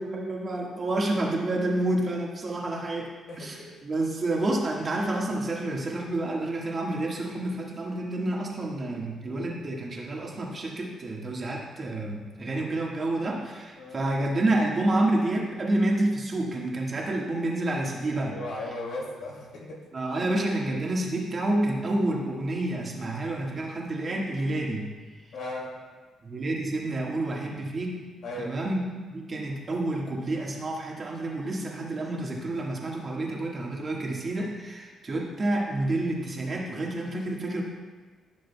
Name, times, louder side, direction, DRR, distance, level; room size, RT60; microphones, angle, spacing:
voice 1, 0.0-3.1 3.4-18.4 19.9-24.9 26.2-28.0 28.4-28.9 29.1-37.6, right 2 dB, 35° right, -2 dB, 1.6 m, -29 dB
voice 2, 3.3-3.7 13.8-14.0 18.3-19.8 25.3-25.7 28.2-28.6, left 1 dB, 70° left, -2 dB, 2.4 m, -36 dB
14.5 x 6.4 x 2.3 m, 1.4 s
cardioid pair, 90°, 0 cm